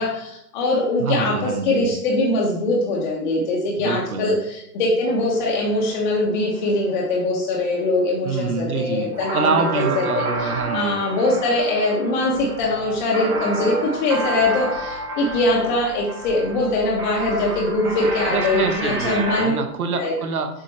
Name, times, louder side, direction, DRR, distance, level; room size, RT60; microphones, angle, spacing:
voice 1, 0.0-9.6 9.9-19.5 19.9-20.1, left 2 dB, 30° left, -3 dB, 1.0 m, -22 dB
voice 2, 1.0-1.9 3.8-4.4 8.2-11.0 18.3-20.5, right 5 dB, 60° right, 6 dB, 1.0 m, -26 dB
sound 1, 5.0-19.5, right 2 dB, 20° right, 0.8 m, -30 dB
7.2 x 4.2 x 3.2 m, 0.76 s
figure-of-eight pair, 125°, 49 cm